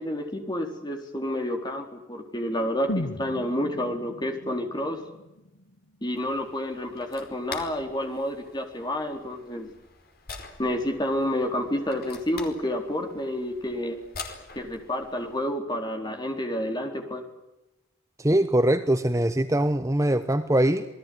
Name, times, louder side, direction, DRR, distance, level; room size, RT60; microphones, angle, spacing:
voice 1, 0.0-5.0 6.0-9.7 10.6-14.0 14.5-17.2, left 1 dB, 20° left, 4.3 m, -29 dB
sound 1, 2.9-6.9 7.2-7.3, left 1 dB, 75° left, 1.5 m, -37 dB
sound 2, 6.1-15.4, left 4 dB, 50° left, 4.8 m, -45 dB
voice 2, 18.2-20.8, right 1 dB, 15° right, 1.0 m, -22 dB
28.0 x 20.0 x 9.5 m
head